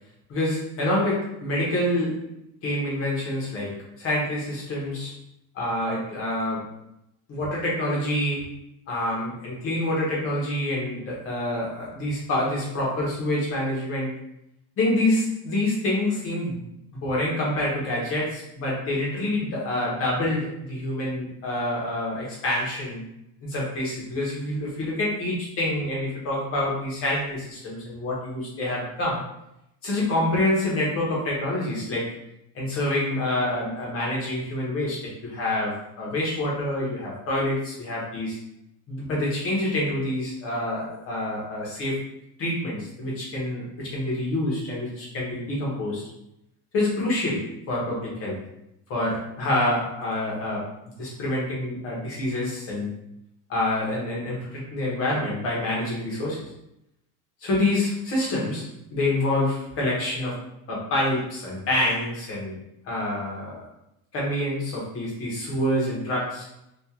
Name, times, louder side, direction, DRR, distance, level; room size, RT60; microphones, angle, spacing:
voice 1, 0.3-2.3 2.6-5.2 5.5-6.7 7.3-8.5 8.9-14.2 14.8-16.6 16.9-23.0 23.4-29.3 29.8-32.2 32.5-38.4 38.9-42.0 42.4-46.0 46.7-48.4 48.9-52.9 53.5-56.5 57.4-60.4 60.7-62.6 62.8-63.7 64.1-66.5, left 1 dB, 30° left, -4 dB, 0.9 m, -27 dB
2.9 x 2.5 x 3.6 m, 0.82 s
cardioid pair, 180°, 48 cm